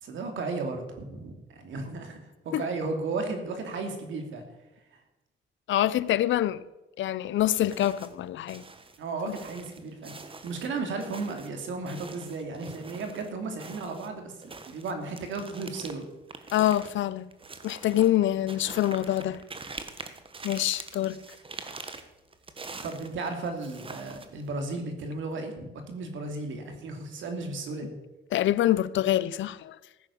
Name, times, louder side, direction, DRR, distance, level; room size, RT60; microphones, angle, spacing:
voice 1, 0.0-4.4 4.9-5.0 9.0-10.2 10.4-16.1 22.8-28.0, right 3 dB, 75° right, 2.8 m, -34 dB
voice 2, 5.7-6.6 7.0-8.6 16.5-17.3 17.6-19.4 20.4-21.2 28.3-29.8, left 13 dB, 70° left, 0.7 m, -25 dB
sound 1, 7.6-8.2 8.5-13.3 13.6-24.5, right 3 dB, 25° right, 1.4 m, -44 dB
15.0 x 9.3 x 7.1 m
cardioid pair, 90°, 20 cm